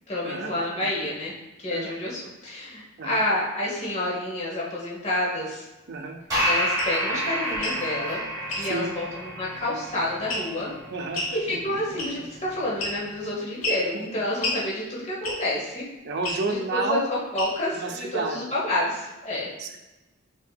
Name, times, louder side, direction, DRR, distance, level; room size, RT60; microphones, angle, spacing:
voice 1, 0.1-1.3 1.6-5.6 6.4-8.2 8.6-10.7 11.3-15.8 16.5-19.5, left 1 dB, 35° left, -5 dB, 1.0 m, -29 dB
voice 2, 5.9-6.2 8.7-8.9 10.9-11.2 11.7-12.2 16.0-17.0 17.8-18.5 19.6-19.8, right 3 dB, 55° right, 4 dB, 0.5 m, -30 dB
sound 1, 6.3-13.3, equal, 15° right, 1.3 m, -31 dB
sound 2, 6.8-6.9 7.5-7.8 8.5-8.7 10.3-10.6 11.1-11.4 12.0-12.3 12.8-13.2 13.6-13.8 14.4-14.6 15.2-15.5 16.2-16.4 17.3-17.7, left 1 dB, 85° left, 1.0 m, -30 dB
5.1 x 2.8 x 2.2 m, 1.0 s
head